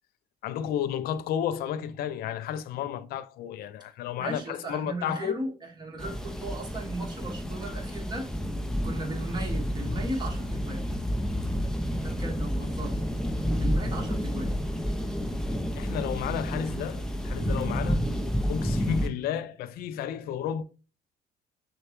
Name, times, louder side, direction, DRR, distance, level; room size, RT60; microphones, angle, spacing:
voice 1, 0.4-5.4 15.7-18.0 18.5-20.6, left 9 dB, 65° left, 0.4 m, -32 dB
voice 2, 4.2-8.3 8.8-10.8 12.0-13.0 13.6-14.6, right 2 dB, 25° right, 1.5 m, -36 dB
sound 1, 6.0-19.1, equal, 5° left, 0.5 m, -30 dB
6.4 x 2.2 x 3.0 m
cardioid pair, 110°, 17 cm